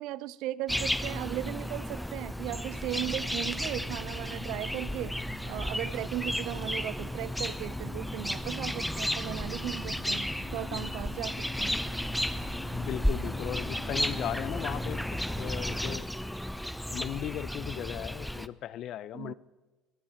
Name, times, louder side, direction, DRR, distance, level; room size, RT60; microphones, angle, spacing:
voice 1, 0.0-5.1 5.5-11.8 19.1-19.3, right 15 dB, 65° right, 20 dB, 0.4 m, -37 dB
sound 1, 0.7-18.5, equal, ahead, 0.5 m, -33 dB
sound 2, 2.8-15.1, left 3 dB, 30° left, 2.6 m, -47 dB
voice 2, 12.7-16.1 16.9-19.3, left 11 dB, 55° left, 19 dB, 0.5 m, -37 dB
22.5 x 8.7 x 4.4 m, 1.2 s
supercardioid pair, 90°, 0 cm